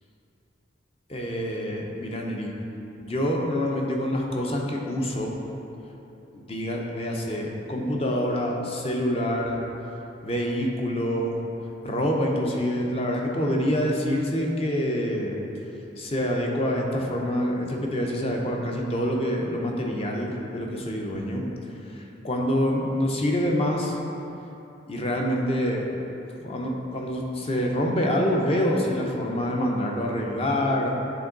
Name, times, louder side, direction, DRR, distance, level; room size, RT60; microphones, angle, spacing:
voice 1, 1.1-2.5 3.0-5.3 6.3-9.6 10.2-11.3 11.8-15.4 16.0-21.4 21.9-24.0 24.9-25.8 26.4-31.0, equal, 30° left, 0 dB, 0.7 m, -26 dB
8.6 x 3.6 x 3.9 m, 2.9 s
head